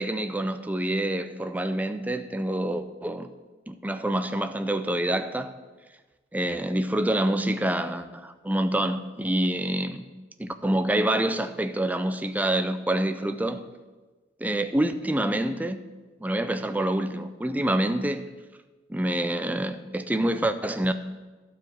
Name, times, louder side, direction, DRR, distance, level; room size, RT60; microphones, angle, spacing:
voice 1, 0.0-3.3 3.7-5.5 6.3-10.0 10.4-13.6 14.4-15.8 16.2-18.2 18.9-20.9, right 1 dB, 10° right, 0.4 m, -27 dB
12.0 x 4.9 x 7.8 m
head